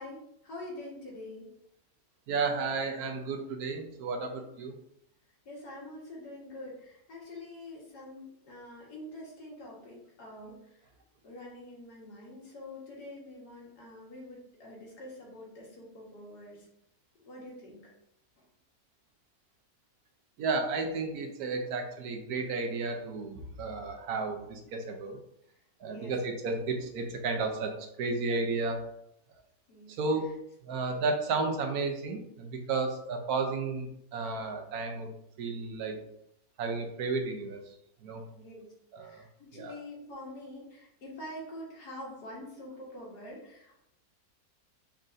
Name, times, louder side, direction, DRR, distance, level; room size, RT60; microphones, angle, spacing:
voice 1, 0.0-1.5 5.5-10.8 11.2-16.7 17.2-17.9 25.9-26.1 29.7-29.9 38.3-38.7 39.0-43.8, left 1 dB, 85° left, -3 dB, 2.0 m, -45 dB
voice 2, 2.3-4.7 20.4-25.2 25.8-28.8 30.0-30.3 30.6-35.1 35.4-36.0 36.6-37.6 38.0-38.2 38.9-39.2 39.5-39.8, right 3 dB, 75° right, 4 dB, 1.2 m, -32 dB
5.5 x 3.6 x 2.6 m, 0.76 s
omnidirectional pair, 1.7 m